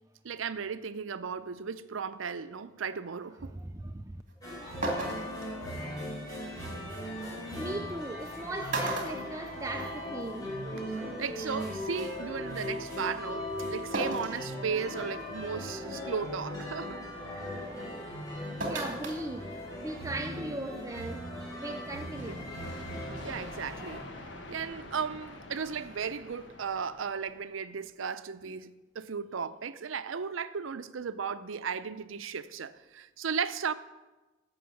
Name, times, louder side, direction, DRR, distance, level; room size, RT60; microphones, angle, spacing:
voice 1, 0.2-3.5 11.0-17.0 22.3-22.4 23.2-24.0 24.5-33.7, right 6 dB, 75° right, 0.6 m, -35 dB
voice 2, 3.5-4.2 7.3-10.5 18.3-21.2 21.6-22.5, right 2 dB, 15° right, 0.4 m, -38 dB
sound 1, 4.3-4.4 4.8-5.5 7.1-7.2 8.2-8.3 8.7-10.1 10.4-10.5 11.7-11.8 13.9-14.4 15.0-15.1 15.7-16.0 18.6-19.2 19.5-19.6, right 2 dB, 40° right, 2.3 m, -34 dB
sound 2, 4.4-24.0, left 1 dB, 20° left, 4.1 m, -38 dB
sound 3, 22.1-27.7, left 2 dB, 60° left, 1.4 m, -47 dB
13.5 x 6.1 x 7.7 m
head